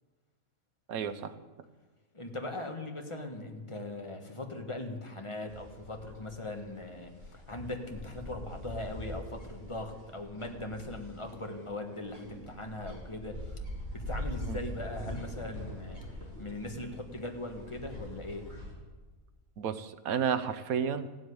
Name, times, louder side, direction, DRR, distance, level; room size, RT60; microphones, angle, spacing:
voice 1, 0.9-1.3 14.5-14.6 19.6-21.1, right 7 dB, 90° right, 12 dB, 1.3 m, -31 dB
voice 2, 2.1-13.5 13.9-16.0 16.4-18.5, left 2 dB, 20° left, 3 dB, 1.5 m, -40 dB
sound 1, 5.5-18.7, left 1 dB, 45° right, 4.3 m, -43 dB
15.5 x 7.8 x 9.7 m, 1.3 s
omnidirectional pair, 1.5 m